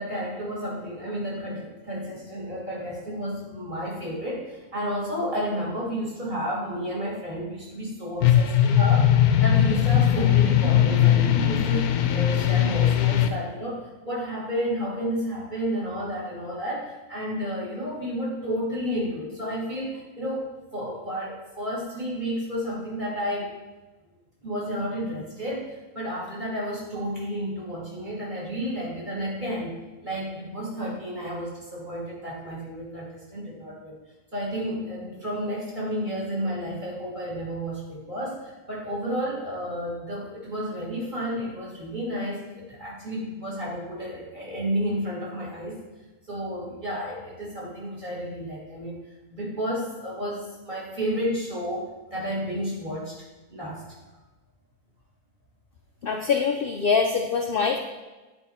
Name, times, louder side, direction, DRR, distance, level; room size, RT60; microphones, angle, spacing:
voice 1, 0.0-9.1 9.4-23.5 24.4-29.7 30.0-34.0 34.3-45.8 46.3-49.0 49.3-53.2 53.5-53.8, equal, 30° right, -6 dB, 2.7 m, -31 dB
sound 1, 8.2-13.3, left 10 dB, 75° left, 1.1 m, -19 dB
voice 2, 56.0-57.8, left 5 dB, 60° left, 3 dB, 0.6 m, -24 dB
10.0 x 4.8 x 4.4 m, 1.2 s
omnidirectional pair, 1.6 m